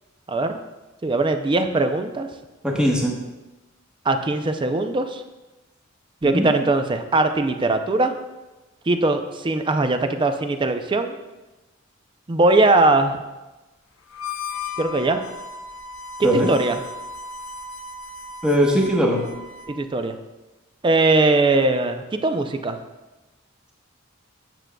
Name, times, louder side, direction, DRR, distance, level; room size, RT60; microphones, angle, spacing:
voice 1, 0.3-0.6 1.0-2.3 4.1-5.2 6.2-8.2 8.9-11.2 12.3-13.2 14.8-15.2 16.5-16.8 19.7-20.2 20.8-22.8, right 2 dB, 25° right, 8 dB, 0.4 m, -20 dB
voice 2, 2.6-3.2 6.3-6.5 16.2-16.5 18.4-19.2, equal, 5° right, -2 dB, 1.0 m, -19 dB
Harmonica, 14.1-19.8, left 4 dB, 85° left, 0.7 m, -36 dB
9.0 x 6.0 x 2.2 m, 1.1 s
head